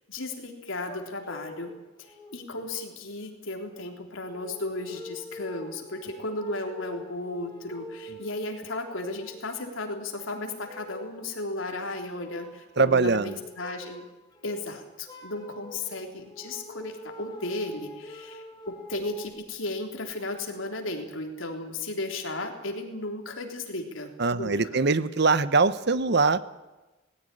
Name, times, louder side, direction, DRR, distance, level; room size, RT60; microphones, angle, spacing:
voice 1, 0.1-1.7 2.0-14.0 14.4-24.9, left 2 dB, 80° left, 3 dB, 3.5 m, -35 dB
sound 1, 0.9-1.7 2.0-2.5 3.2-3.3 4.3-9.5 9.9-11.2 11.5-11.8 12.2-12.6 12.9-14.0 14.3-19.3, left 2 dB, 20° left, 3.7 m, -45 dB
voice 2, 12.8-13.4 24.2-26.6, right 4 dB, 55° right, 15 dB, 0.9 m, -23 dB
18.5 x 16.0 x 10.0 m, 1.1 s
head